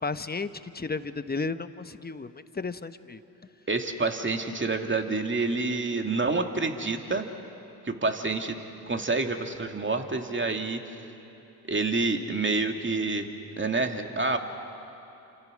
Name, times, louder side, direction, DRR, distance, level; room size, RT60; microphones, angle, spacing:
voice 1, 0.0-3.2, left 4 dB, 20° left, 11 dB, 1.2 m, -33 dB
voice 2, 3.7-7.3 7.8-8.6 8.9-10.8 11.7-13.3 13.6-14.4, right 3 dB, 25° right, 4 dB, 2.7 m, -28 dB
29.5 x 26.5 x 6.5 m, 3.0 s
hypercardioid pair, 50°, 45 cm